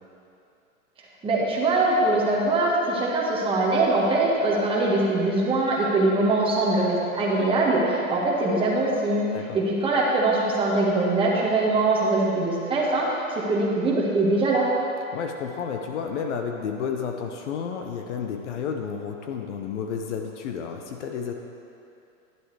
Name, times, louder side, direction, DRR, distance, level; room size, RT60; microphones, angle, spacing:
voice 1, 1.2-9.3 9.5-14.7, right 2 dB, 10° right, -5 dB, 1.5 m, -22 dB
voice 2, 15.1-21.3, left 6 dB, 55° left, 4 dB, 0.8 m, -31 dB
10.5 x 7.7 x 3.3 m, 2.7 s
hypercardioid pair, 130°, 43 cm